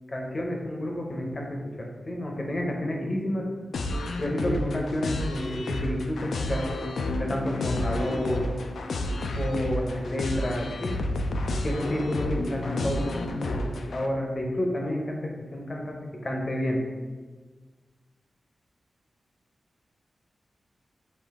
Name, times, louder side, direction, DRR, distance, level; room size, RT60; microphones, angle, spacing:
voice 1, 0.1-3.5 4.2-6.6 7.2-8.5 9.3-11.0 11.6-16.8, left 1 dB, 35° left, 1 dB, 0.6 m, -30 dB
sound 1, 3.7-14.1, left 1 dB, 90° left, 0.3 m, -31 dB
5.2 x 2.5 x 3.6 m, 1.4 s
wide cardioid pair, 160°, 0 cm